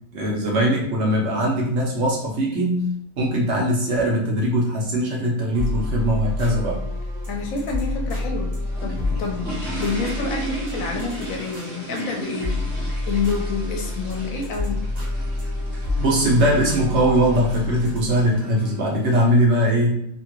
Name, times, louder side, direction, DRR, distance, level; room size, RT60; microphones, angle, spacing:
voice 1, 0.1-2.8 3.2-6.8 16.0-20.0, equal, 60° right, -2 dB, 1.0 m, -21 dB
sound 1, 5.5-19.4, left 2 dB, 35° right, 0.7 m, -29 dB
voice 2, 7.3-8.6 8.8-14.9, left 4 dB, 80° left, 1 dB, 1.1 m, -28 dB
sound 2, 8.5-18.7, right 2 dB, 10° right, 1.0 m, -36 dB
2.9 x 2.4 x 2.9 m, 0.73 s
omnidirectional pair, 1.4 m